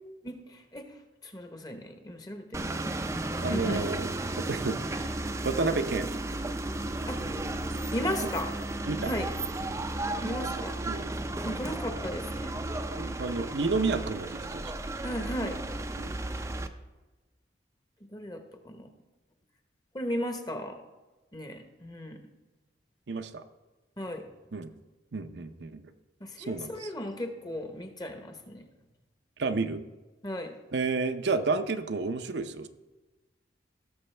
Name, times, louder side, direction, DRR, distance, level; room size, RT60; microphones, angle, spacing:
voice 1, 0.2-0.9 1.2-2.7 3.5-3.8 7.1-7.2 7.9-8.5 9.0-9.3 10.2-10.8 11.4-12.6 15.0-15.6 18.1-18.9 19.9-20.8 21.3-22.2 24.0-24.2 26.2-28.6 30.2-30.6, equal, 20° left, 6 dB, 0.9 m, -35 dB
sound 1, 2.5-16.7, right 2 dB, 15° right, 0.4 m, -34 dB
voice 2, 3.4-4.1 4.4-5.1 5.4-6.1 8.9-9.1 10.2-11.2 12.9-14.6 16.0-16.2 23.1-23.4 24.5-24.7 25.1-25.9 26.5-26.9 29.4-29.8 30.7-32.7, right 4 dB, 75° right, 8 dB, 0.6 m, -31 dB
17.0 x 6.8 x 3.3 m, 1.2 s
head